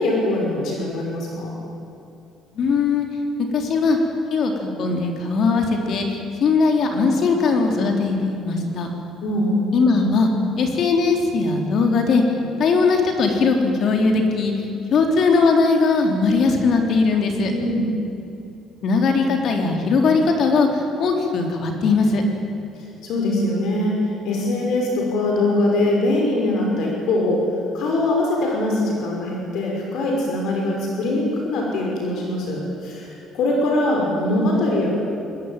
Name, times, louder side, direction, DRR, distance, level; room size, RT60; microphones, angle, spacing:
voice 1, 0.0-1.5 9.2-9.8 17.5-17.9 23.0-24.0 24.2-27.4 27.7-34.9, left 1 dB, 60° left, -1 dB, 5.9 m, -22 dB
voice 2, 2.6-3.1 3.5-4.0 4.3-8.9 9.7-10.3 10.6-12.2 12.6-17.5 18.8-22.2, left 4 dB, 45° left, 2 dB, 3.8 m, -19 dB
25.5 x 21.0 x 9.2 m, 2.7 s
cardioid pair, 175°, 0 cm